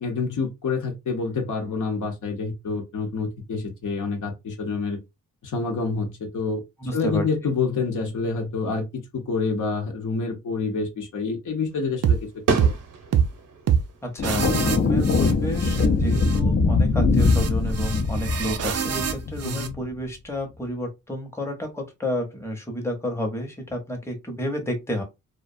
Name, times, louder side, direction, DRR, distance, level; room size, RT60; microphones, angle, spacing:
voice 1, 0.0-5.0 5.4-6.6 6.9-12.3 12.5-12.7 19.4-19.8, left 4 dB, 70° left, 0.8 m, -27 dB
voice 2, 6.8-7.2 14.0-25.0, equal, 10° left, 0.8 m, -31 dB
sound 1, 11.7-19.7, right 4 dB, 75° right, 0.8 m, -35 dB
sound 2, 12.0-12.2 12.6-12.8 13.1-13.3 13.7-13.9 14.2-15.9 16.1-16.4 17.2-19.7, right 8 dB, 50° right, 0.5 m, -25 dB
sound 3, 14.2-19.8, left 3 dB, 40° left, 0.5 m, -22 dB
2.4 x 2.2 x 2.5 m
cardioid pair, 75°, 32 cm